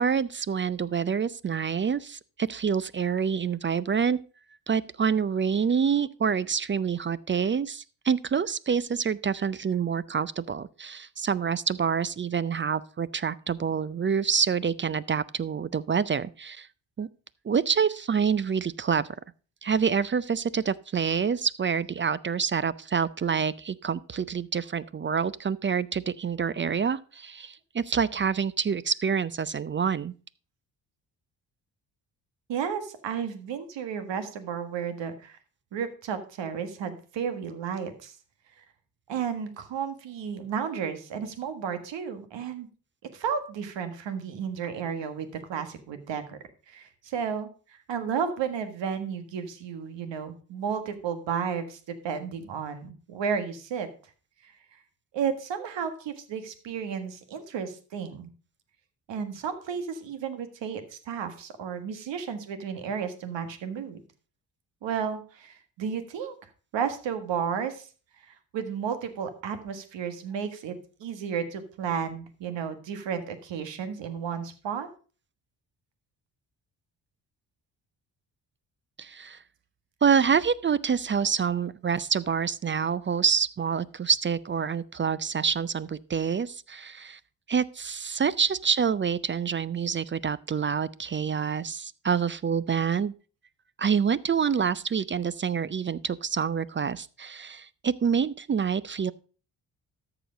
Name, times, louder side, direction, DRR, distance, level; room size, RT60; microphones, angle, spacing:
voice 1, 0.0-4.2 4.7-16.7 17.0-17.1 17.4-19.1 19.6-30.1 79.0-79.4 80.0-87.2 87.5-93.1 93.8-99.1, right 6 dB, 25° right, 19 dB, 0.4 m, -27 dB
voice 2, 32.5-35.4 35.7-38.1 39.1-42.7 43.1-46.4 46.7-53.9 54.4-54.5 55.1-58.3 59.1-64.0 64.8-66.3 66.7-67.9 68.2-74.9, right 7 dB, 75° right, 10 dB, 1.7 m, -33 dB
13.5 x 4.9 x 5.1 m, 0.38 s
supercardioid pair, 65°, 44 cm